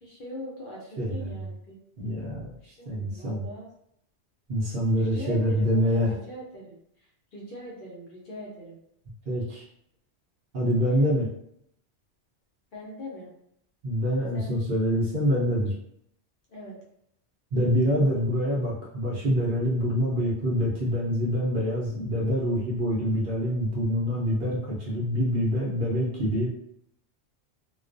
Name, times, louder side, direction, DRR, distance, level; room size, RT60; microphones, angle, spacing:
voice 1, 0.0-1.8 2.6-3.7 5.0-6.8 7.3-8.8 12.7-13.3 14.3-14.5 16.5-16.8, equal, 55° left, -4 dB, 0.7 m, -41 dB
voice 2, 2.0-3.4 4.5-6.1 9.3-9.6 10.5-11.3 13.8-15.7 17.5-26.5, equal, 55° right, -4 dB, 0.7 m, -26 dB
2.3 x 2.2 x 2.5 m, 0.73 s
omnidirectional pair, 1.2 m